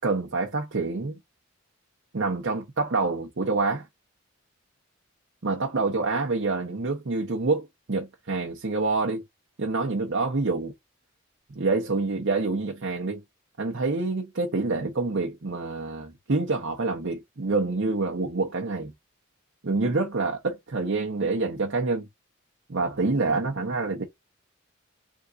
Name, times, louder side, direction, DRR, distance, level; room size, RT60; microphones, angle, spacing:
voice 1, 0.0-1.2 2.1-3.9 5.4-9.2 9.6-10.7 11.5-13.2 13.6-18.9 19.6-22.1 22.7-24.0, right 3 dB, 60° right, 0.8 m, -27 dB
3.9 x 3.6 x 2.4 m
head